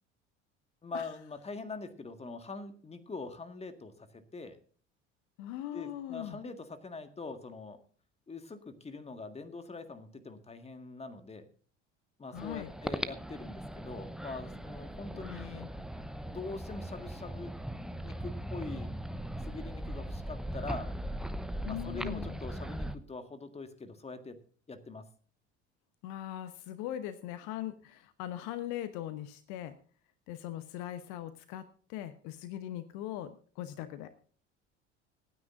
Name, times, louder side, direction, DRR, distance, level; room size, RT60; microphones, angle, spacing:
voice 1, 0.8-4.6 5.7-7.8 8.3-11.5 12.2-15.7 16.3-17.6 18.0-18.9 19.4-20.9 21.7-24.4 24.7-25.1, left 3 dB, 15° left, 9 dB, 1.7 m, -43 dB
voice 2, 5.4-6.4 12.3-12.7 15.1-15.7 21.6-22.4 26.0-29.8 30.3-34.1, left 12 dB, 55° left, 12 dB, 1.0 m, -40 dB
sound 1, 12.4-23.0, right 1 dB, ahead, 0.8 m, -39 dB
25.5 x 9.5 x 2.6 m, 0.43 s
figure-of-eight pair, 65°, 36 cm